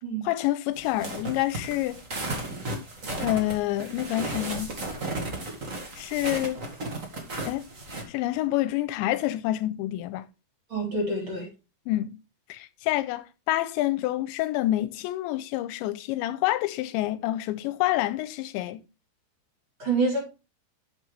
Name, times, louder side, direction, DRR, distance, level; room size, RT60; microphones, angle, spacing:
voice 1, 0.2-2.0 3.2-4.8 6.0-6.6 7.4-7.7 8.1-10.3 11.9-12.2 12.5-18.8, left 15 dB, 90° left, 2.9 m, -27 dB
sound 1, 0.7-8.0, right 2 dB, 50° right, 0.9 m, -34 dB
voice 2, 10.7-11.5 19.8-20.2, right 3 dB, 30° right, 4.2 m, -26 dB
12.0 x 6.8 x 3.4 m
omnidirectional pair, 5.1 m